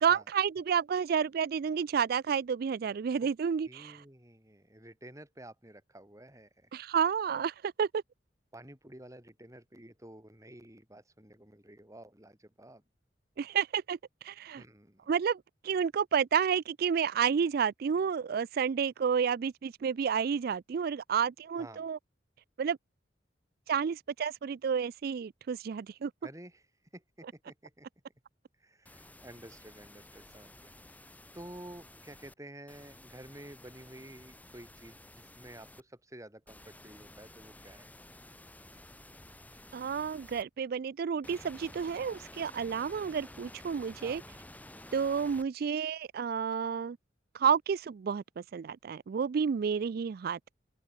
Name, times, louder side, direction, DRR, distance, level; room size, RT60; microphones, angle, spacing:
voice 1, 0.0-4.0 6.7-8.0 13.4-14.0 14.2-14.6 15.1-22.0 22.6-22.8 23.7-26.1 39.7-44.2 44.9-47.0 47.3-50.6, right 7 dB, 55° right, 0.4 m, -30 dB
voice 2, 3.7-6.7 8.5-12.8 14.6-15.0 21.6-21.9 26.2-26.6 26.9-27.9 28.6-37.9 44.0-44.2, right 1 dB, 20° right, 5.5 m, -51 dB
sound 1, 28.9-32.3 32.7-35.8 36.5-40.4 41.2-45.5, left 1 dB, 10° left, 3.2 m, -52 dB
open air
head